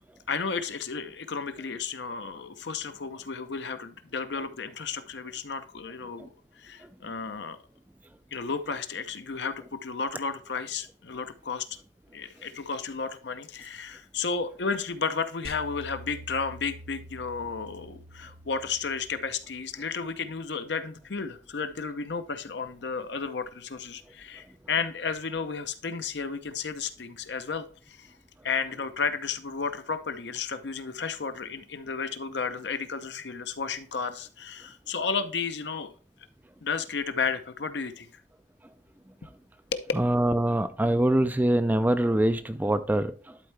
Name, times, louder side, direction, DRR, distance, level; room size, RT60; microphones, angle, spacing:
voice 1, 0.3-6.3 6.6-7.6 8.3-11.7 12.1-28.1 28.4-35.9 36.6-38.1 39.7-39.8, left 5 dB, 65° left, 0.7 m, -33 dB
sound 1, 15.4-19.8, right 1 dB, 55° right, 0.9 m, -47 dB
voice 2, 39.9-43.4, right 1 dB, 10° right, 0.3 m, -24 dB
11.5 x 4.4 x 3.2 m
head